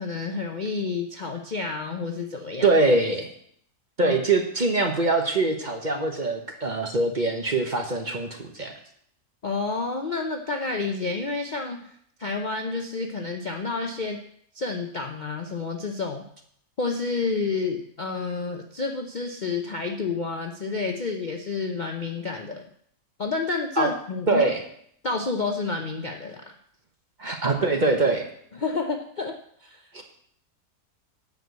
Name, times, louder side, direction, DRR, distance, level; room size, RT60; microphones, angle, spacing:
voice 1, 0.0-2.8 4.0-4.2 9.4-11.8 12.2-14.2 14.5-16.2 16.8-22.6 23.2-24.4 25.0-26.5 28.5-29.8, left 4 dB, 45° left, 3 dB, 0.6 m, -29 dB
voice 2, 2.6-3.3 4.0-8.7 23.8-23.9 24.3-24.6 27.2-28.3, right 3 dB, 35° right, 3 dB, 1.0 m, -23 dB
10.5 x 4.8 x 8.2 m, 0.67 s
omnidirectional pair, 1.6 m